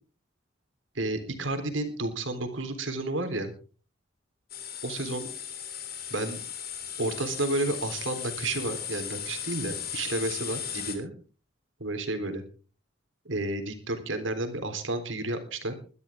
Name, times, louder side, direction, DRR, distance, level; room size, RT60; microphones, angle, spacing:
voice 1, 1.0-3.5 4.8-5.3 6.1-6.4 7.0-11.1 11.8-12.4 13.3-15.7, right 2 dB, 80° right, 7 dB, 3.7 m, -31 dB
sound 1, 4.5-10.9, left 9 dB, 50° left, 3.2 m, -37 dB
21.5 x 12.5 x 3.6 m, 0.38 s
head